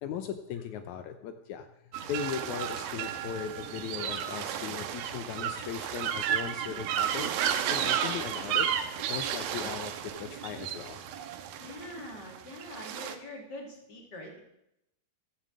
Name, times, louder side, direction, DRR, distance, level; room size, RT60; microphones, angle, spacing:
voice 1, 0.0-1.7 2.1-7.3 7.7-8.7 9.1-11.0, left 8 dB, 80° left, 7 dB, 1.7 m, -38 dB
sound 1, 1.9-13.1, right 9 dB, 85° right, 2.8 m, -33 dB
voice 2, 11.6-14.4, left 1 dB, 30° left, 0 dB, 3.0 m, -44 dB
14.5 x 9.0 x 7.7 m, 0.83 s
omnidirectional pair, 4.4 m